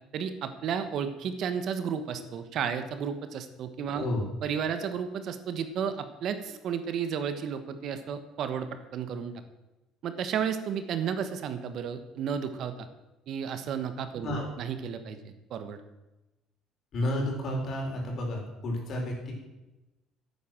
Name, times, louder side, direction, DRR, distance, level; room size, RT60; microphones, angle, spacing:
voice 1, 0.1-4.1 4.4-9.3 10.0-12.9 13.3-14.3 14.6-15.2 15.5-15.8, right 7 dB, 55° right, 9 dB, 1.2 m, -32 dB
voice 2, 16.9-19.3, left 1 dB, 45° left, 0 dB, 4.4 m, -31 dB
11.0 x 8.8 x 7.6 m, 1.0 s
cardioid pair, 130°, 0 cm